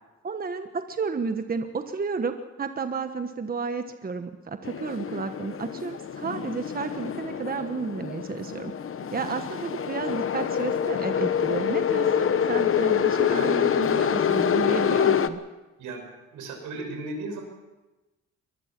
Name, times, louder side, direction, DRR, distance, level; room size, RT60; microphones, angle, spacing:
voice 1, 0.2-8.7 9.1-15.4, right 5 dB, 30° right, 8 dB, 1.3 m, -32 dB
sound 1, 4.6-15.3, left 8 dB, 45° left, 1.1 m, -26 dB
voice 2, 13.3-13.6 15.8-16.0 16.3-17.4, right 2 dB, 80° right, 4 dB, 6.1 m, -35 dB
23.5 x 19.5 x 6.0 m, 1.1 s
cardioid pair, 90°, 30 cm